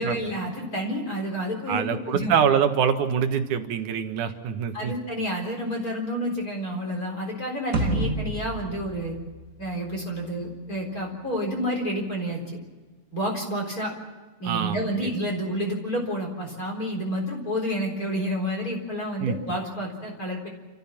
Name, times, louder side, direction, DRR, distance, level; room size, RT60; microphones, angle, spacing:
voice 1, 0.0-2.3 4.7-9.2 9.6-12.6 13.1-13.9 14.4-20.5, equal, 30° left, 0 dB, 4.4 m, -29 dB
voice 2, 1.7-4.9 14.4-14.8 19.2-19.4, right 7 dB, 85° right, 7 dB, 2.8 m, -24 dB
sound 1, 7.7-10.2, right 2 dB, 30° right, 1.7 m, -29 dB
28.5 x 14.5 x 7.3 m, 1.3 s
omnidirectional pair, 3.5 m